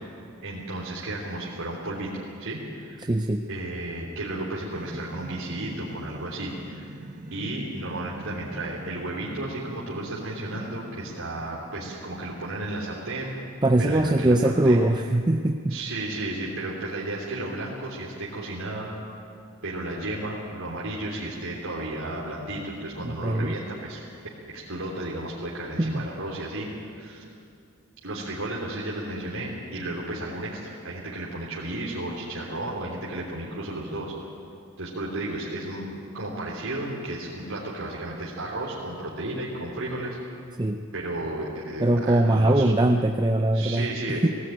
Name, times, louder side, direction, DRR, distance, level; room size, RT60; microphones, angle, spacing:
voice 1, 0.4-3.1 3.5-6.9 7.3-13.4 13.8-14.8 15.7-18.9 19.6-24.0 24.5-26.7 26.9-27.2 28.0-34.1 34.8-35.9 36.1-40.2 40.9-42.8 43.5-44.3, right 1 dB, 70° right, -6 dB, 3.3 m, -33 dB
voice 2, 3.1-3.4 13.6-15.8 23.0-23.5 25.8-26.0 40.6-40.8 41.8-43.9 44.2-44.3, right 1 dB, 20° right, 5 dB, 0.5 m, -21 dB
sound 1, 4.7-13.2, right 1 dB, 35° right, 1.4 m, -42 dB
18.0 x 17.0 x 9.1 m, 2.5 s
head